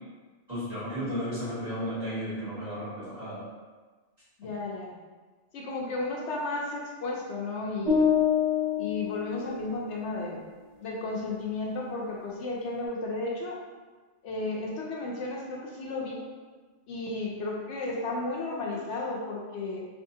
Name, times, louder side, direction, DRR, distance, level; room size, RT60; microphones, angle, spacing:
voice 1, 0.5-3.4, equal, 35° right, -12 dB, 1.7 m, -34 dB
voice 2, 4.4-5.0 5.5-8.0 8.8-10.4 10.8-13.6 14.2-16.2 16.9-19.9, left 2 dB, 75° left, -2 dB, 0.9 m, -33 dB
sound 1, 7.9-10.0, left 7 dB, 30° left, 1.0 m, -26 dB
3.5 x 3.4 x 2.7 m, 1.4 s
omnidirectional pair, 1.2 m